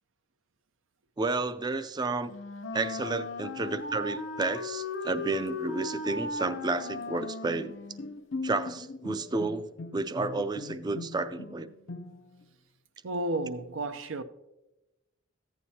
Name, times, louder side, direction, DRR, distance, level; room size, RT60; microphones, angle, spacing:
voice 1, 1.2-2.3 2.7-7.7 8.4-9.6 9.9-11.7, right 3 dB, 20° right, 0.4 m, -31 dB
Wind instrument woodwind instrument, 2.2-8.2, left 3 dB, 85° left, 0.9 m, -37 dB
Bowed string instrument, 7.6-12.5, left 3 dB, 60° left, 0.5 m, -41 dB
voice 2, 13.0-14.2, right 2 dB, 85° right, 0.6 m, -32 dB
14.5 x 9.2 x 2.8 m
head